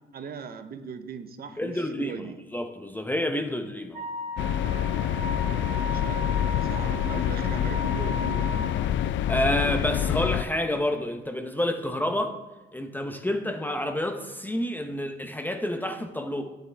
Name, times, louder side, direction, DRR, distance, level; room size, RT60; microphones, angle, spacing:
voice 1, 0.1-2.4 5.9-6.3 6.5-9.2, right 6 dB, 50° right, 9 dB, 0.8 m, -39 dB
voice 2, 1.6-4.1 9.3-12.4 12.7-16.4, left 1 dB, 10° left, 5 dB, 0.7 m, -29 dB
Wind instrument woodwind instrument, 3.9-8.8, equal, 30° right, 2.0 m, -36 dB
sound 1, 4.4-10.4, left 11 dB, 70° left, 0.4 m, -27 dB
8.6 x 7.8 x 3.4 m, 1.2 s
cardioid pair, 90°, 20 cm